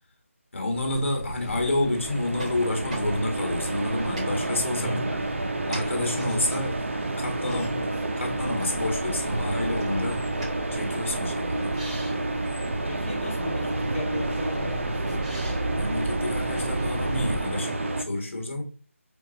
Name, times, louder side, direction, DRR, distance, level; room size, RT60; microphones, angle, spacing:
voice 1, 0.5-5.2 5.7-6.9 7.2-7.7 8.2-10.2 10.7-11.8 15.7-18.6, left 1 dB, 60° left, 1.4 m, -29 dB
sound 1, 0.7-17.4, right 1 dB, 25° right, 1.9 m, -36 dB
sound 2, 1.4-18.0, right 2 dB, 60° right, 0.6 m, -30 dB
voice 2, 4.8-5.1 7.4-7.9 12.8-15.2, left 1 dB, 5° left, 0.6 m, -36 dB
4.6 x 2.3 x 2.7 m
figure-of-eight pair, 165°, 8 cm